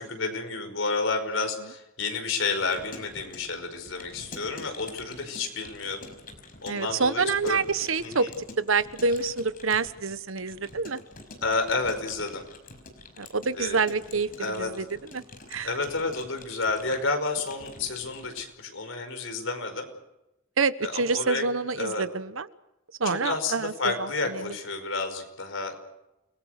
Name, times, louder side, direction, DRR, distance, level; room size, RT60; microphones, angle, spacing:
voice 1, 0.0-6.1 6.6-7.6 8.0-8.3 11.4-12.4 13.5-13.8 14.4-14.7 15.6-19.9 20.8-21.5 21.8-22.0 23.0-25.9, left 3 dB, 70° left, 6 dB, 5.2 m, -30 dB
Keyboard (musical) / Computer keyboard, 2.4-18.5, left 3 dB, 45° left, 5.3 m, -47 dB
voice 2, 6.7-8.3 8.6-11.0 13.2-14.8 15.1-15.2 15.5-15.7 20.6-22.5 23.0-23.7 24.4-24.5, right 4 dB, 75° right, 14 dB, 1.1 m, -27 dB
29.5 x 21.0 x 6.5 m, 0.93 s
head